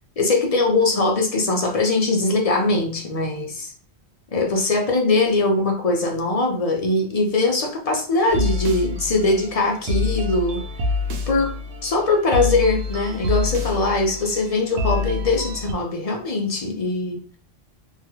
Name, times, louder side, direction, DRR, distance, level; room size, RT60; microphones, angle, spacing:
voice 1, 0.2-3.7 4.3-10.6 11.3-11.5 11.8-17.2, left 2 dB, 50° left, 0.4 m, -21 dB
sound 1, 8.3-15.7, left 3 dB, 80° right, 0.8 m, -27 dB
2.7 x 2.3 x 2.9 m
omnidirectional pair, 1.1 m